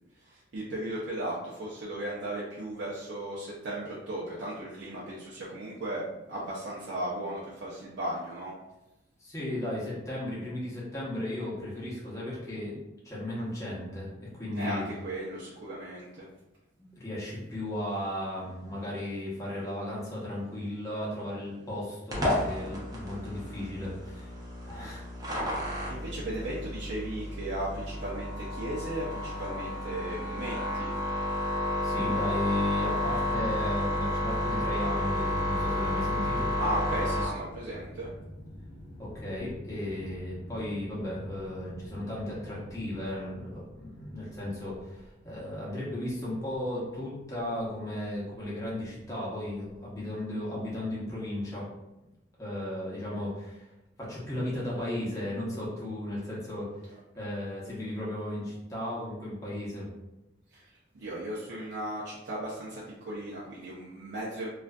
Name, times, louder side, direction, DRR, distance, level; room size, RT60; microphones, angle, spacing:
voice 1, 0.3-6.0 6.3-8.5 14.6-16.1 24.8-24.9 25.9-30.9 36.6-38.1 60.5-60.6 60.9-64.5, right 1 dB, 75° right, -7 dB, 0.5 m, -36 dB
voice 2, 9.2-12.7 13.0-14.8 16.8-24.4 24.6-25.8 31.8-36.5 39.0-51.7 52.4-53.7 54.0-59.9, left 1 dB, 15° left, -7 dB, 0.7 m, -35 dB
sound 1, 22.1-37.2, left 1 dB, 20° right, 0.5 m, -31 dB
sound 2, 32.7-50.1, equal, 50° left, 0.6 m, -49 dB
2.5 x 2.3 x 2.2 m, 0.97 s
head